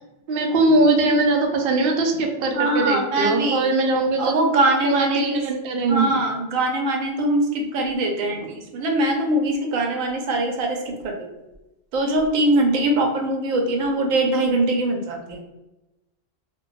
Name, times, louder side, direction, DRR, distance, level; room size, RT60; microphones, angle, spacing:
voice 1, 0.3-4.3 4.8-6.2, right 2 dB, 60° right, 2 dB, 0.6 m, -21 dB
voice 2, 2.5-3.7 4.2-5.4 5.9-11.3 11.9-15.4, right 1 dB, 85° right, 2 dB, 1.1 m, -22 dB
2.5 x 2.2 x 3.8 m, 1.0 s
omnidirectional pair, 1.3 m